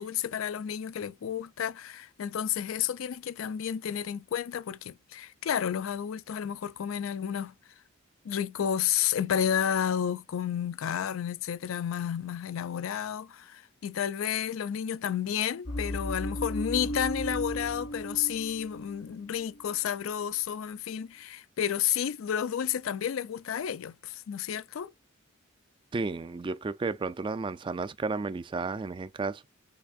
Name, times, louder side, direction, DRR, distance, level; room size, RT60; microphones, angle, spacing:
voice 1, 0.0-7.5 8.2-24.9, left 9 dB, 80° left, 0.4 m, -31 dB
sound 1, 15.7-19.1 19.4-19.7, equal, 65° left, 1.1 m, -35 dB
voice 2, 25.9-29.5, right 3 dB, 25° right, 0.3 m, -32 dB
5.8 x 3.5 x 2.3 m
head